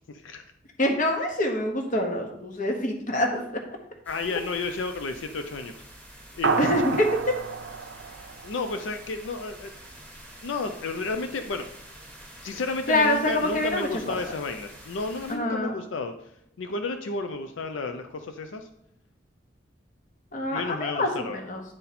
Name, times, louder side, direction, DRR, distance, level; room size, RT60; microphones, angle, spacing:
voice 1, 0.1-0.4 4.1-5.7 6.4-6.6 8.4-9.7 10.4-11.7 12.4-16.1 16.6-18.7 20.5-21.4, left 3 dB, 85° left, 7 dB, 0.5 m, -32 dB
voice 2, 0.8-3.6 6.6-7.3 12.9-14.2 15.3-15.8 20.3-21.6, left 1 dB, 45° left, 3 dB, 1.0 m, -25 dB
sound 1, 4.0-15.4, right 1 dB, 10° left, 1.3 m, -47 dB
sound 2, 6.4-9.1, right 4 dB, 65° right, 0.5 m, -30 dB
8.8 x 4.1 x 4.1 m, 0.75 s
head